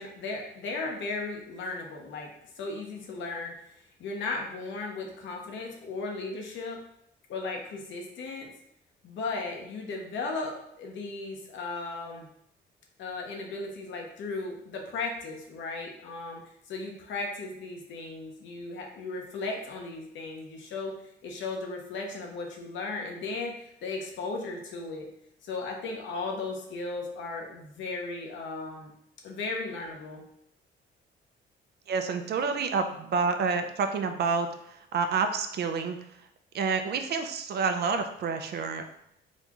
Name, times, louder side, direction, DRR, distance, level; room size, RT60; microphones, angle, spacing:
voice 1, 0.0-2.3 2.6-6.8 7.3-8.5 9.0-12.3 13.0-20.9 21.2-25.1 25.4-28.9 29.2-30.2, left 3 dB, 75° left, 1 dB, 0.8 m, -36 dB
voice 2, 31.9-36.0 36.5-38.8, right 5 dB, 55° right, 7 dB, 0.5 m, -28 dB
4.1 x 2.3 x 2.9 m, 0.75 s
cardioid pair, 90°, 20 cm